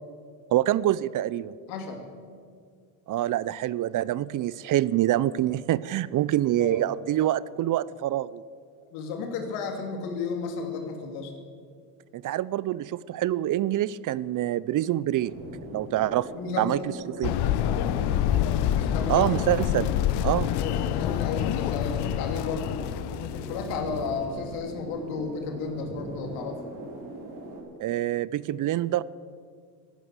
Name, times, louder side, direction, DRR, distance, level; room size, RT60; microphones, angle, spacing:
voice 1, 0.5-1.5 3.1-8.4 12.1-15.3 15.7-16.3 16.6-16.8 17.1-17.4 19.1-19.9 20.2-20.5 27.8-29.0, right 13 dB, 45° right, 20 dB, 0.6 m, -26 dB
voice 2, 1.7-2.1 6.6-6.8 8.9-11.3 16.3-16.7 18.8-19.3 20.6-22.9 23.3-26.6, left 5 dB, 85° left, 4 dB, 2.7 m, -33 dB
sound 1, 15.1-27.6, right 2 dB, 65° right, 5.7 m, -41 dB
sound 2, 17.2-24.5, left 11 dB, 65° left, 0.9 m, -27 dB
14.5 x 12.0 x 7.9 m, 2.1 s
supercardioid pair, 80°, 42 cm